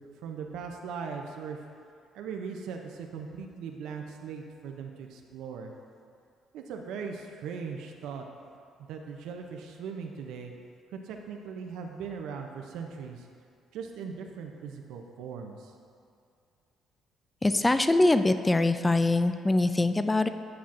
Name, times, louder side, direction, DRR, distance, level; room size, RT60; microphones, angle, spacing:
voice 1, 0.0-1.6 2.1-5.7 6.5-8.3 8.8-10.5 10.9-13.3 13.7-15.7, right 6 dB, 85° right, 3 dB, 0.5 m, -39 dB
voice 2, 17.4-20.3, left 2 dB, 15° left, 10 dB, 0.3 m, -23 dB
9.4 x 5.6 x 2.5 m, 2.4 s
cardioid pair, 85°, 0 cm